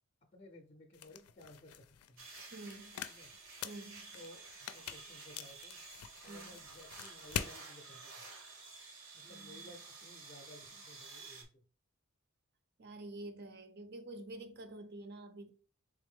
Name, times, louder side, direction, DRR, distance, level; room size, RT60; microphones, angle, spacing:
voice 1, 0.3-2.3 3.1-3.3 4.1-5.8 6.2-8.2 9.1-11.7, left 1 dB, 30° left, 0.5 m, -57 dB
sound 1, 0.9-7.6, left 9 dB, 90° left, 0.4 m, -45 dB
sound 2, 2.2-11.4, right 4 dB, 65° right, 1.1 m, -52 dB
voice 2, 2.5-3.1 3.6-4.2 6.3-6.6 9.3-9.8 12.8-15.5, right 2 dB, 45° right, 0.5 m, -48 dB
3.9 x 3.4 x 3.6 m
head